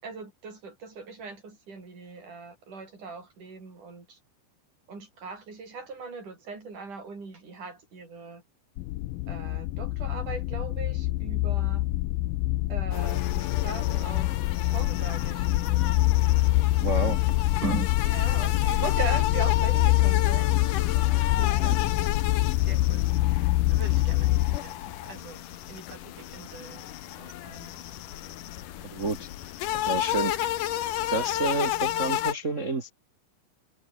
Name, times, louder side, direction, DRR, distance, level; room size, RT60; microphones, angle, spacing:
voice 1, 0.0-4.2 4.9-8.4 9.3-11.9 12.7-16.1 17.6-21.0 21.3-21.8 22.7-23.1 23.3-23.4 23.7-24.8 25.1-25.4 25.7-26.8 27.1-27.7, right 4 dB, 45° right, 9.3 m, -39 dB
sound 1, 8.8-24.6, left 18 dB, 85° left, 2.1 m, -25 dB
sound 2, 12.9-32.3, left 12 dB, 65° left, 2.4 m, -33 dB
voice 2, 16.8-17.2 28.8-29.3 29.8-30.3 31.1-32.9, right 2 dB, 70° right, 0.7 m, -29 dB
omnidirectional pair, 4.9 m